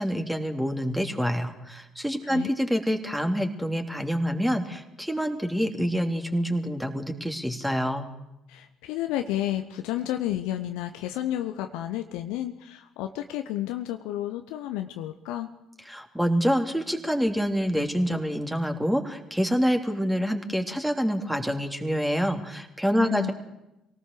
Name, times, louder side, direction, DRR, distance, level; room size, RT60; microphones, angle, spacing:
voice 1, 0.0-8.1 15.9-23.3, equal, 5° right, 5 dB, 3.2 m, -27 dB
voice 2, 2.2-2.5 8.5-15.5 23.0-23.3, left 13 dB, 70° left, 7 dB, 0.9 m, -31 dB
25.0 x 18.0 x 6.8 m, 0.92 s
figure-of-eight pair, 50°, 0 cm